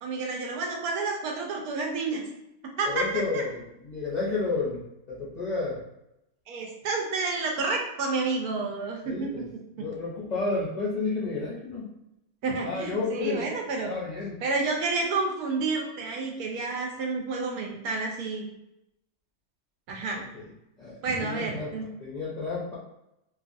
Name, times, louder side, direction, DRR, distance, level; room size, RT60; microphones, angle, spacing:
voice 1, 0.0-2.2 2.8-3.0 3.3-3.4 6.5-9.4 9.8-9.9 12.4-13.9 14.4-18.5 19.9-20.2 21.0-21.8, right 3 dB, 80° right, 1 dB, 1.1 m, -30 dB
voice 2, 2.8-4.8 5.1-5.8 9.0-9.4 9.8-11.9 12.6-13.5 13.8-14.4 20.1-20.4 20.8-21.7 22.0-22.7, left 3 dB, 50° left, -9 dB, 0.5 m, -31 dB
2.8 x 2.4 x 2.5 m, 0.85 s
omnidirectional pair, 1.6 m